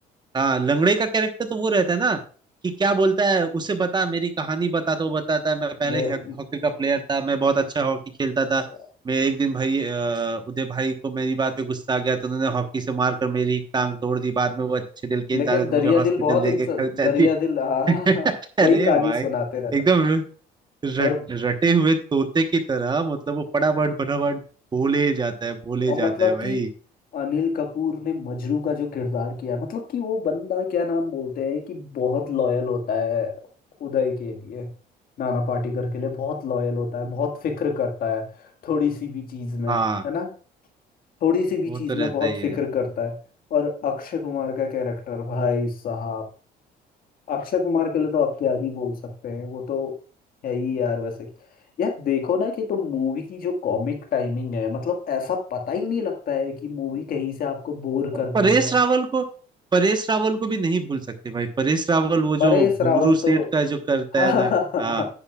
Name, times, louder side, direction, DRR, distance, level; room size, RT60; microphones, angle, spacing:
voice 1, 0.3-2.2 2.6-6.2 6.5-8.6 9.0-17.3 17.9-19.2 19.7-20.2 20.8-24.4 24.7-26.7 39.7-40.0 41.7-42.5 58.3-59.2 59.7-64.5 64.8-65.0, right 4 dB, 25° right, 7 dB, 1.1 m, -23 dB
voice 2, 5.8-6.4 15.3-18.3 18.6-19.7 21.0-21.2 25.8-26.6 27.1-33.3 33.8-34.7 35.2-39.8 40.0-40.3 41.2-43.1 43.5-46.3 47.3-49.9 50.4-51.3 51.8-58.7 62.4-63.5 64.1-65.1, left 6 dB, 60° left, 4 dB, 1.7 m, -25 dB
10.0 x 9.6 x 2.3 m, 0.40 s
cardioid pair, 110°, 17 cm